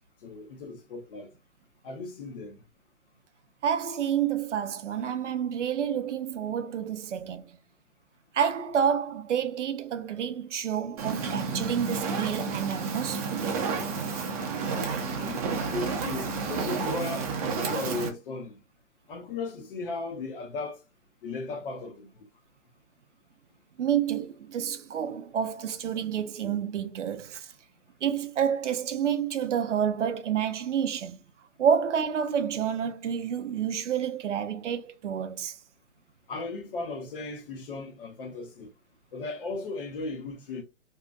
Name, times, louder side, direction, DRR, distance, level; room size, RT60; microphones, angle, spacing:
voice 1, 0.2-1.3 1.8-2.6 15.0-18.5 19.1-20.8 21.2-22.1 36.3-38.7 39.1-40.6, left 3 dB, 45° left, 0.8 m, -36 dB
voice 2, 3.6-7.6 8.3-13.6 23.8-27.5 28.0-31.2 31.6-35.6, right 8 dB, 70° right, 0.6 m, -29 dB
Fire, 11.0-18.1, right 5 dB, 30° right, 0.6 m, -31 dB
2.7 x 2.4 x 2.3 m
hypercardioid pair, 135°, 38 cm